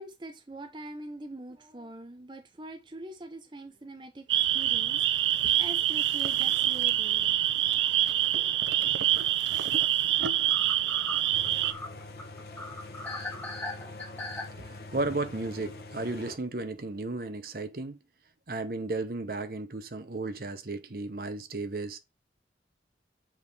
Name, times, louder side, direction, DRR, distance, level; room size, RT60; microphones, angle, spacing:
voice 1, 0.0-7.4 8.3-8.7, right 1 dB, 25° right, 0.6 m, -44 dB
sound 1, 4.3-11.7, right 12 dB, 90° right, 0.5 m, -26 dB
sound 2, 6.6-6.7 6.9-7.0 9.5-9.6 9.9-10.0 10.2-14.5, left 2 dB, 10° left, 1.4 m, -39 dB
sound 3, 11.3-16.4, left 2 dB, 55° left, 1.1 m, -44 dB
voice 2, 14.6-18.0 18.5-22.0, right 2 dB, 50° right, 0.8 m, -34 dB
7.4 x 3.6 x 4.1 m
head